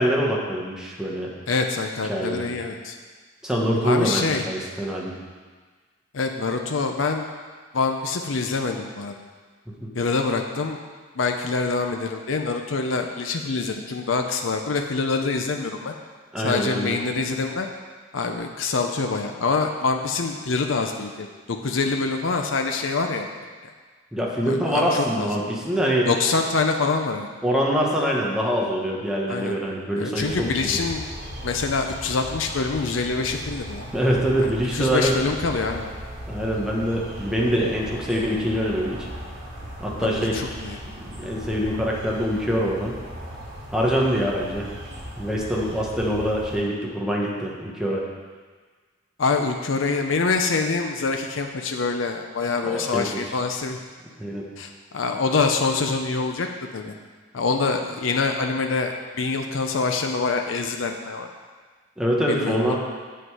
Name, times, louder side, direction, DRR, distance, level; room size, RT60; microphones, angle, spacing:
voice 1, 0.0-1.3 2.1-2.5 3.4-5.1 9.8-9.9 16.3-16.9 24.1-26.1 27.4-30.8 33.9-35.2 36.3-39.1 39.8-40.5 41.2-43.0 43.7-44.7 45.2-48.0 52.6-53.1 54.2-54.4 62.0-62.8, equal, 5° right, -3 dB, 1.3 m, -24 dB
voice 2, 1.5-3.0 3.8-4.5 6.1-7.3 7.7-9.1 9.9-10.8 11.2-15.9 16.4-17.7 18.1-23.3 24.5-25.3 26.1-27.3 29.3-29.5 29.9-31.0 31.4-33.9 34.4-35.9 40.0-40.8 49.2-53.8 54.6-56.5 56.7-56.9 57.3-61.3 62.3-62.8, left 4 dB, 75° left, 4 dB, 0.6 m, -25 dB
sound 1, 30.2-46.6, equal, 60° right, 3.0 m, -37 dB
7.9 x 7.8 x 4.9 m, 1.5 s
head